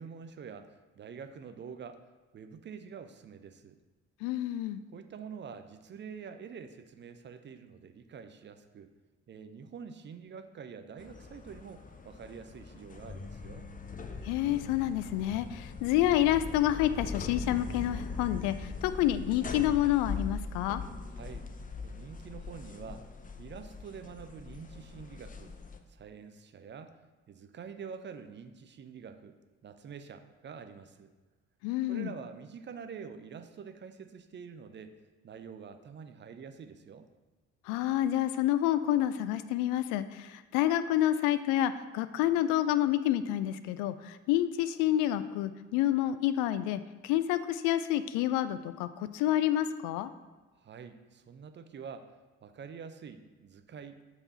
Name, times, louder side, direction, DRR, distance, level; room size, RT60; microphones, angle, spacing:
voice 1, 0.0-2.0 2.3-3.8 4.9-8.9 9.3-13.7 21.1-21.5 21.8-23.1 23.4-25.5 25.9-27.0 27.3-29.3 29.6-31.1 31.9-34.9 35.2-37.1 50.6-52.1 52.4-54.0, right 6 dB, 30° right, 9 dB, 0.6 m, -46 dB
voice 2, 4.2-4.8 14.2-20.8 31.6-32.1 37.7-50.1, left 12 dB, 55° left, 13 dB, 0.5 m, -28 dB
sound 1, 11.0-25.8, left 4 dB, 20° left, 0.7 m, -41 dB
7.4 x 4.8 x 4.3 m, 1.3 s
figure-of-eight pair, 45°, 37 cm